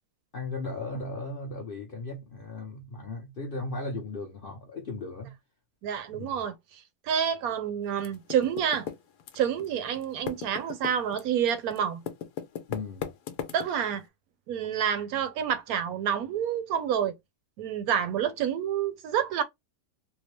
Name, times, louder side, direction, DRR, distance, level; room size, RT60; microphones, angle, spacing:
voice 1, 0.3-5.3 6.1-6.4 12.7-13.1, left 2 dB, 50° left, 0.6 m, -36 dB
voice 2, 5.8-6.5 7.1-8.9 9.3-12.0 13.5-14.0 14.5-17.1 17.6-19.4, right 8 dB, 75° right, 1.0 m, -28 dB
Typing, 8.0-9.7 10.0-14.0, left 8 dB, 85° left, 1.2 m, -37 dB
3.6 x 2.0 x 3.0 m
omnidirectional pair, 1.7 m